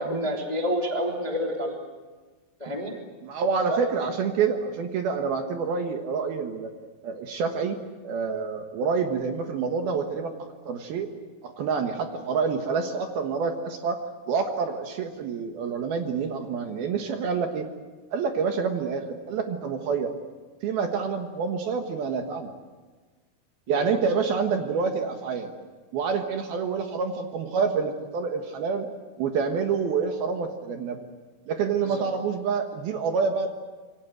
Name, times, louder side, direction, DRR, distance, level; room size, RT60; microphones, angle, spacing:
voice 1, 0.0-1.7 2.6-2.9 3.7-3.8 23.7-23.8 31.9-32.0, equal, 15° left, 1 dB, 1.6 m, -28 dB
voice 2, 3.2-6.7 7.0-7.8 8.0-11.1 11.4-14.0 14.3-17.7 18.1-20.1 20.6-22.5 23.7-25.5 25.9-28.9 29.2-31.1 31.5-33.5, right 5 dB, 65° right, 5 dB, 2.9 m, -27 dB
27.0 x 23.0 x 7.9 m, 1.3 s
omnidirectional pair, 5.4 m